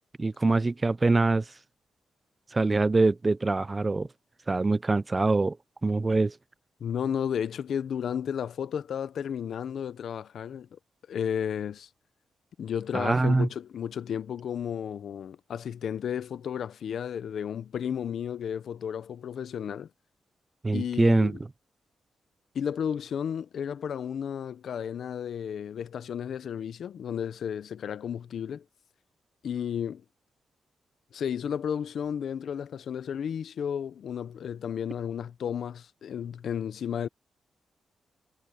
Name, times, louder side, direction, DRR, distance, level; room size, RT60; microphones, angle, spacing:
voice 1, 0.2-1.4 2.5-4.1 4.5-5.6 5.8-6.3 12.9-13.5 20.6-21.4, right 3 dB, 25° right, 0.5 m, -24 dB
voice 2, 6.8-10.8 11.1-11.9 12.6-19.9 20.7-21.4 22.5-28.6 29.4-30.0 31.1-37.1, left 8 dB, 70° left, 0.8 m, -33 dB
cardioid pair, 110°, 0 cm